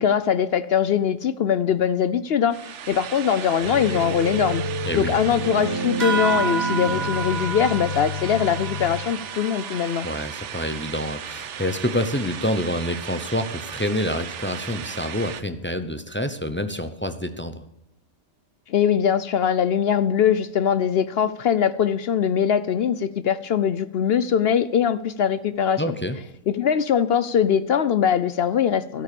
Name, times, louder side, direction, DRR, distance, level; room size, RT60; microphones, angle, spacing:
voice 1, 0.0-2.6 2.9-4.6 4.9-10.1 18.7-25.8 26.5-29.0, left 8 dB, 65° left, 14 dB, 0.6 m, -22 dB
sound 1, 2.5-15.4, right 9 dB, 60° right, 1.0 m, -36 dB
sound 2, 3.6-8.9, equal, 80° right, 2.8 m, -30 dB
voice 2, 4.8-5.2 10.0-17.6 25.8-26.2, equal, 15° left, 9 dB, 0.4 m, -27 dB
sound 3, 6.0-10.9, right 4 dB, 30° right, 1.1 m, -31 dB
12.5 x 8.7 x 6.8 m, 0.86 s
omnidirectional pair, 1.5 m